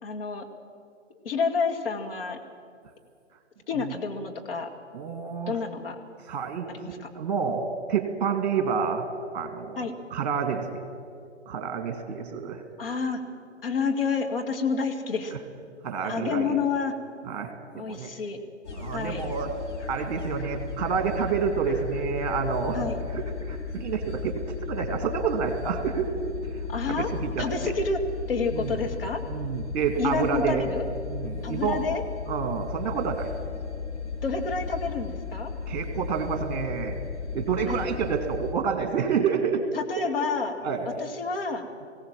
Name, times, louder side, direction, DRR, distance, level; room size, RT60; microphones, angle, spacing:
voice 1, 0.0-0.5 1.2-2.4 3.7-4.7 5.5-6.0 6.7-7.1 9.8-9.9 12.8-13.2 13.6-15.3 16.0-17.0 17.7-18.4 18.9-19.2 22.7-23.0 26.7-27.1 27.4-28.0 28.3-29.2 30.0-30.9 31.4-32.0 34.2-35.5 37.7-37.9 39.7-40.5 41.0-41.7, left 5 dB, 50° left, 3 dB, 2.2 m, -29 dB
voice 2, 4.9-5.6 6.3-7.6 7.9-9.0 9.3-10.8 11.5-12.6 15.8-16.6 17.3-18.1 18.7-19.5 19.9-22.8 23.1-24.4 24.7-26.1 26.5-26.6 26.9-27.7 28.5-28.8 29.3-30.6 31.1-31.8 32.3-33.3 35.7-37.0 37.3-39.6 40.6-40.8, right 6 dB, 35° right, 6 dB, 2.3 m, -29 dB
sound 1, 18.6-38.5, left 5 dB, 65° left, 2.7 m, -35 dB
21.5 x 17.0 x 7.5 m, 2.3 s
figure-of-eight pair, 130°, 37 cm